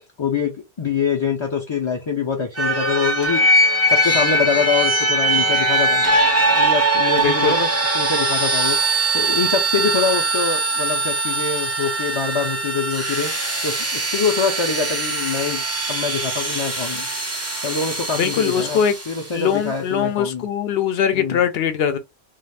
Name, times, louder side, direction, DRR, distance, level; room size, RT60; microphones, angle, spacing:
voice 1, 0.2-0.5 0.8-3.5 4.0-6.1 6.5-7.7 7.9-8.8 9.1-13.3 13.6-15.6 15.9-17.1 17.6-18.8 19.1-20.5 21.1-21.4, left 5 dB, 40° left, 0.5 m, -24 dB
sound 1, 2.6-19.3, right 2 dB, 20° right, 0.4 m, -21 dB
voice 2, 7.2-7.6 18.1-19.0 19.3-22.0, left 8 dB, 70° left, 0.8 m, -21 dB
2.4 x 2.3 x 3.2 m
omnidirectional pair, 1.1 m